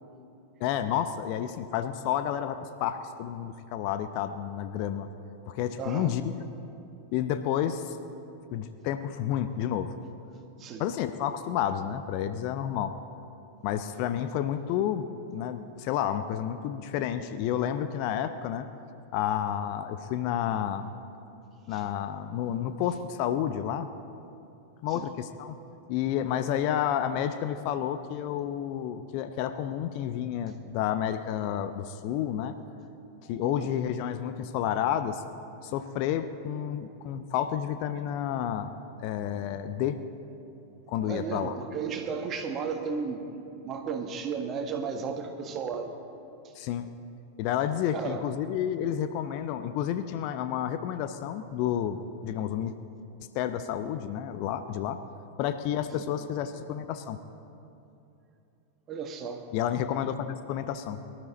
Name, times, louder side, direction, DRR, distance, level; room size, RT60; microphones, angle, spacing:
voice 1, 0.6-5.1 5.5-6.3 7.1-8.0 8.5-9.9 10.8-12.9 13.6-18.7 19.1-20.9 21.7-23.9 24.8-25.6 25.9-32.5 33.3-35.2 35.6-38.7 39.0-40.0 40.9-41.5 46.6-46.9 47.4-52.7 53.3-55.0 55.4-57.2 59.5-61.0, left 10 dB, 45° left, 10 dB, 0.6 m, -30 dB
voice 2, 5.8-6.1 10.6-10.9 21.7-21.8 24.9-25.1 33.4-33.7 40.9-43.2 43.6-45.9 46.4-46.5 47.9-48.3 55.9-56.1 58.9-59.4, right 5 dB, 30° right, 5 dB, 1.5 m, -34 dB
23.5 x 12.0 x 4.1 m, 2.8 s
figure-of-eight pair, 90°, 0 cm